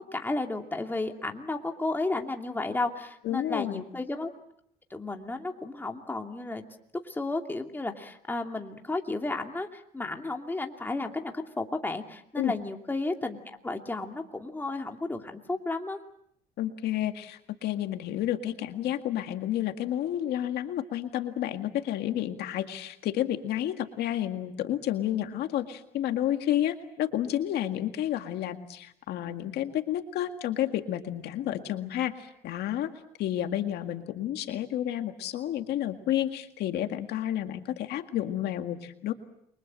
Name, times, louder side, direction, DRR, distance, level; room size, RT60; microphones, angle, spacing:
voice 1, 0.0-4.3 4.9-6.6 7.0-16.0, left 2 dB, 10° left, 3 dB, 2.6 m, -33 dB
voice 2, 3.2-3.8 12.4-12.5 16.6-32.9 33.2-39.1, left 12 dB, 75° left, 6 dB, 2.0 m, -30 dB
29.5 x 23.5 x 7.6 m, 0.73 s
cardioid pair, 110°, 17 cm